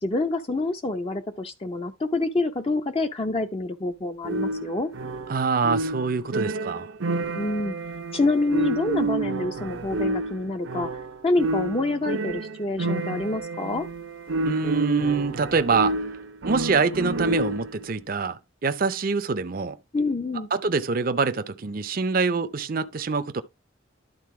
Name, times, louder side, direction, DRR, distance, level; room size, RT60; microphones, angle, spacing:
voice 1, 0.0-4.9 7.3-7.8 8.1-10.9 11.2-13.9 19.9-20.5, left 2 dB, 30° left, 0.5 m, -27 dB
sound 1, 4.2-17.8, right 2 dB, 80° right, 0.9 m, -29 dB
voice 2, 5.3-6.9 14.4-15.9 16.4-19.8 20.5-23.4, right 4 dB, 45° right, 0.5 m, -25 dB
11.5 x 3.9 x 4.7 m
head